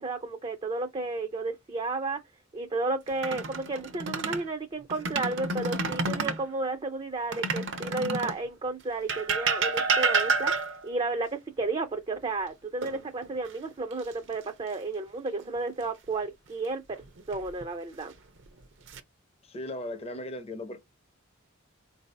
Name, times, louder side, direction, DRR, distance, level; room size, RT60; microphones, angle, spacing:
voice 1, 0.0-2.2 2.5-10.5 10.8-16.8 17.3-18.1, right 3 dB, 25° right, 0.4 m, -32 dB
sound 1, 3.1-4.5 4.9-6.4 7.3-8.5 9.1-10.9 12.8-13.5 13.9-14.1 17.0-17.6 18.4-19.0, right 4 dB, 60° right, 0.7 m, -29 dB
voice 2, 19.5-20.8, left 1 dB, 30° left, 0.6 m, -37 dB
4.4 x 2.7 x 3.2 m
head